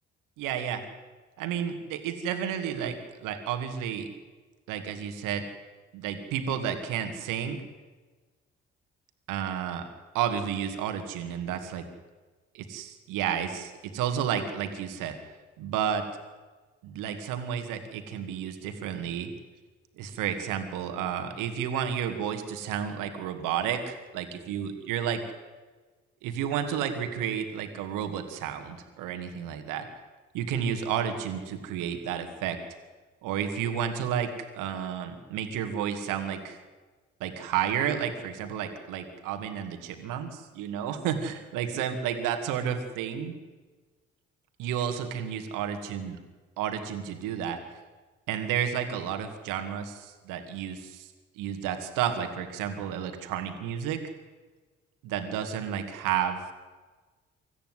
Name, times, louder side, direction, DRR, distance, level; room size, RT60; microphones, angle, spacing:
voice 1, 0.4-0.8 1.4-4.1 4.7-5.4 5.9-7.6 9.3-9.9 10.1-11.9 12.5-15.1 15.6-16.0 16.8-19.3 20.0-25.2 26.2-29.9 30.3-32.6 33.2-36.6 37.2-43.4 44.6-46.2 46.6-47.6 48.3-51.1 51.4-54.0 55.0-56.4, right 8 dB, 70° right, 7 dB, 2.2 m, -31 dB
25.0 x 14.0 x 8.1 m, 1.3 s
figure-of-eight pair, 40°, 33 cm